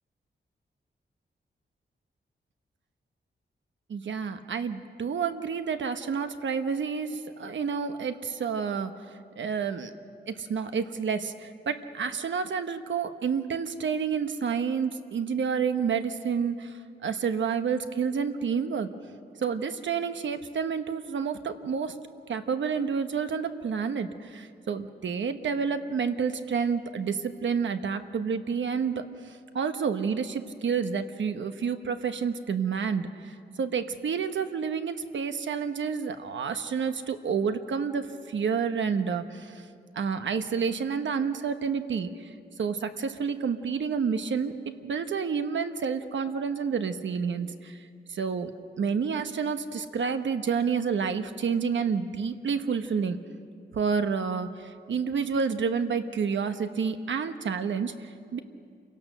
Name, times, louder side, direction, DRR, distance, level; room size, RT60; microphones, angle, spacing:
voice 1, 3.9-8.9 9.4-9.9 10.3-18.9 19.4-22.0 22.3-39.6 39.9-44.5 44.8-47.8 48.1-48.5 48.8-53.2 53.7-58.4, right 6 dB, 80° right, 9 dB, 1.1 m, -29 dB
28.5 x 17.0 x 6.6 m, 2.3 s
wide cardioid pair, 125°, 19 cm